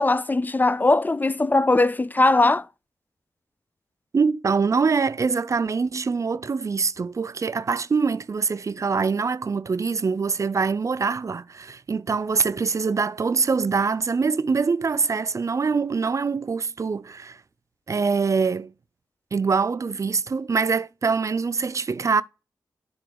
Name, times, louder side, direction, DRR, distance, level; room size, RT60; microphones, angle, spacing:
voice 1, 0.0-2.7, left 2 dB, 25° left, 0.3 m, -20 dB
voice 2, 4.1-17.4 17.9-18.7 19.3-22.2, right 5 dB, 45° right, 0.4 m, -24 dB
7.6 x 3.8 x 5.2 m
cardioid pair, 45°, 7 cm